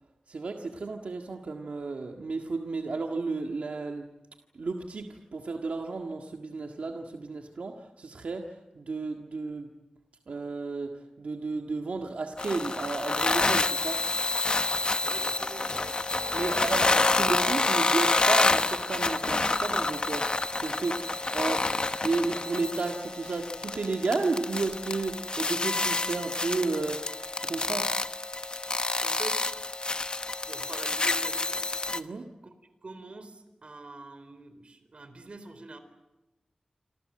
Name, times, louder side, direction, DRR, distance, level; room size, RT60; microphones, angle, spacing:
voice 1, 0.3-4.1 4.5-9.7 10.3-14.0 16.3-20.3 20.6-21.7 22.0-28.0 31.9-32.3, right 3 dB, 80° right, 3 dB, 1.8 m, -33 dB
sound 1, 12.4-32.0, left 3 dB, 45° left, 1.1 m, -28 dB
voice 2, 15.0-16.1 16.4-16.9 28.8-29.4 30.4-31.6 32.4-32.5 32.8-35.8, right 3 dB, 55° right, 11 dB, 4.0 m, -45 dB
27.5 x 26.5 x 7.7 m, 0.98 s
wide cardioid pair, 100°, 2 cm